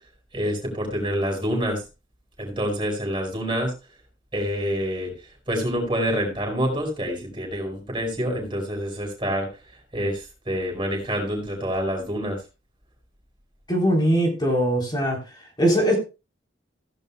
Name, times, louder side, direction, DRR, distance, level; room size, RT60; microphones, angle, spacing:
voice 1, 0.3-1.8 2.4-3.7 4.3-5.1 5.5-9.5 9.9-12.4, equal, 25° right, 1 dB, 5.0 m, -27 dB
voice 2, 13.7-15.2 15.6-15.9, equal, 25° left, -2 dB, 3.6 m, -21 dB
16.0 x 11.0 x 2.2 m, 0.29 s
head